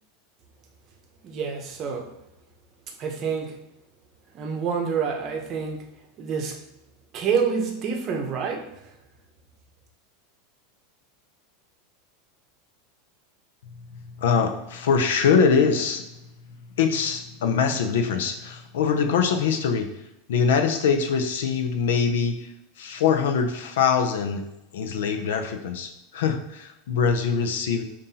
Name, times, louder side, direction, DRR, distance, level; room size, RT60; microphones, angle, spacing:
voice 1, 1.2-2.1 3.0-3.6 4.3-5.8 6.2-6.6 7.1-8.7, right 6 dB, 35° right, 2 dB, 0.7 m, -27 dB
voice 2, 14.2-16.0 16.8-19.9 20.3-22.5 22.8-24.4 24.7-27.8, left 6 dB, 90° left, 6 dB, 0.5 m, -23 dB
5.4 x 2.6 x 2.8 m, 0.88 s
supercardioid pair, 145°, 0 cm